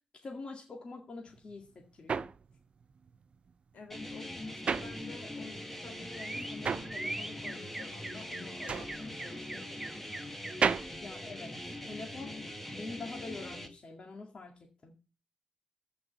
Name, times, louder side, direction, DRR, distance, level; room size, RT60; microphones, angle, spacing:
voice 1, 0.2-2.2 10.9-11.6 11.8-12.5 12.8-14.9, left 3 dB, 40° left, 1 dB, 2.1 m, -45 dB
sound 1, 1.3-5.6 5.9-12.1, right 6 dB, 45° right, 0.6 m, -36 dB
voice 2, 3.7-9.8, left 4 dB, 70° left, 6 dB, 3.6 m, -50 dB
sound 2, 3.9-13.7, left 1 dB, 10° left, 1.7 m, -42 dB
sound 3, 5.3-10.9, right 1 dB, 10° right, 0.7 m, -44 dB
14.0 x 5.5 x 7.0 m, 0.33 s
wide cardioid pair, 155°, 3 cm